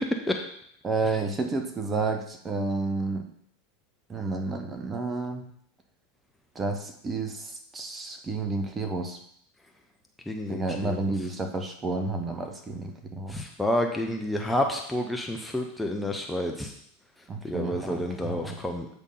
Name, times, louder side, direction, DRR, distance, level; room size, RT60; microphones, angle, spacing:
voice 1, 0.8-3.3 4.1-5.5 6.5-9.2 10.5-13.4 17.3-18.6, right 3 dB, 20° right, 6 dB, 0.9 m, -31 dB
voice 2, 10.3-11.0 13.3-16.7 17.4-18.9, left 1 dB, 5° left, 2 dB, 0.8 m, -29 dB
8.2 x 3.6 x 5.6 m, 0.69 s
figure-of-eight pair, 85°, 0 cm